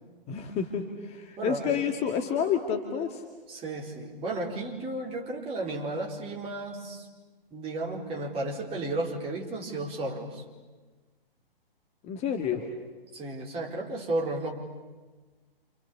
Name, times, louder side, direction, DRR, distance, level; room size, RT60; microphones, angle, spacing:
voice 1, 0.3-3.2 12.0-12.7, left 7 dB, 20° left, 6 dB, 2.2 m, -29 dB
voice 2, 1.4-1.7 3.5-7.1 7.5-10.4 13.1-14.5, right 2 dB, 20° right, -1 dB, 5.0 m, -33 dB
29.0 x 29.0 x 7.1 m, 1.3 s
figure-of-eight pair, 125°, 30 cm